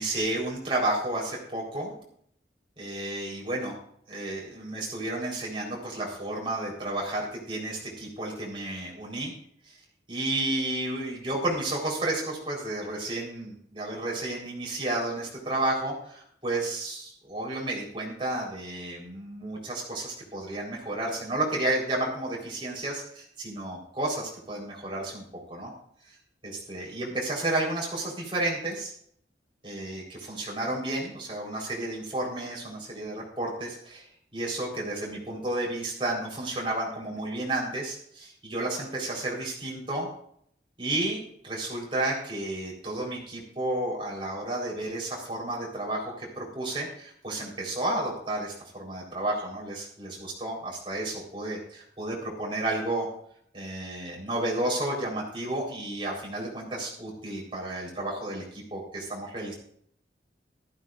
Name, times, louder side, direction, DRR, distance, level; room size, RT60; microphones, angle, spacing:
voice 1, 0.0-1.9 2.8-3.7 4.1-9.3 9.7-9.8 10.1-25.7 26.4-28.9 29.6-34.1 34.3-40.1 40.8-53.1 53.5-59.5, right 2 dB, 30° right, -3 dB, 3.9 m, -32 dB
14.5 x 13.5 x 2.5 m, 0.67 s
head